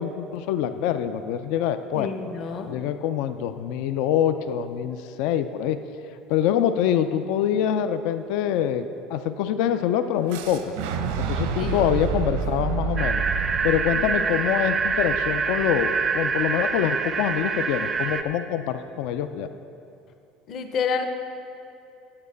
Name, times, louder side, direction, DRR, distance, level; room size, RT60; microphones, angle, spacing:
voice 1, 0.0-2.1 2.7-5.8 6.3-8.8 9.1-10.7 11.2-13.2 13.6-19.5, left 10 dB, 60° left, 10 dB, 0.4 m, -25 dB
voice 2, 1.9-2.7 6.7-7.0 11.6-11.9 20.5-21.1, left 6 dB, 35° left, 6 dB, 0.7 m, -29 dB
Fire / Explosion, 10.3-16.2, right 6 dB, 85° right, 0.7 m, -30 dB
sound 1, 13.0-18.2, right 5 dB, 20° right, 0.4 m, -25 dB
8.7 x 7.1 x 6.8 m, 2.7 s
cardioid pair, 175°, 0 cm